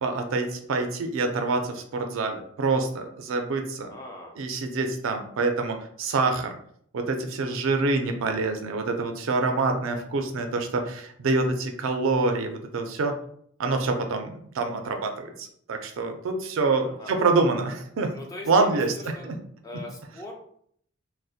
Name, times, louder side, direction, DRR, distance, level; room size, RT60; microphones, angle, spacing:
voice 1, 0.0-3.9 4.4-6.6 6.9-13.1 13.6-18.1 18.5-19.4, right 3 dB, 70° right, 5 dB, 0.4 m, -26 dB
voice 2, 3.9-4.3 16.8-17.2 18.1-19.3 19.6-20.3, left 2 dB, 15° left, 0 dB, 0.4 m, -41 dB
2.5 x 2.1 x 2.4 m, 0.65 s
head